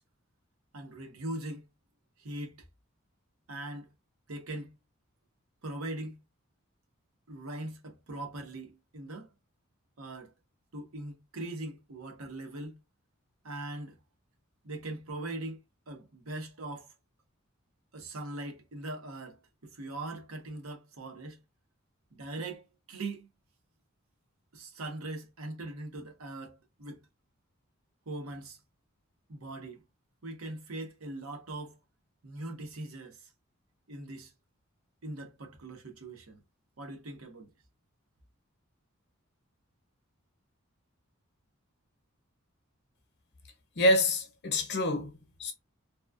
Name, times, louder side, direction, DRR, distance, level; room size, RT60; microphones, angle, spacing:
voice 1, 0.7-1.7 2.2-2.6 3.5-3.9 4.3-4.8 5.6-6.2 7.3-9.3 10.0-10.3 10.7-12.8 13.4-14.0 14.6-16.9 17.9-21.4 22.1-23.3 24.5-27.1 28.1-28.6 29.3-29.8 30.2-31.8 32.2-33.3 33.9-34.3 35.0-36.4 36.8-37.5, right 2 dB, 80° right, 0.8 m, -41 dB
voice 2, 43.8-45.5, left 1 dB, 50° left, 0.8 m, -27 dB
2.9 x 2.2 x 2.4 m
head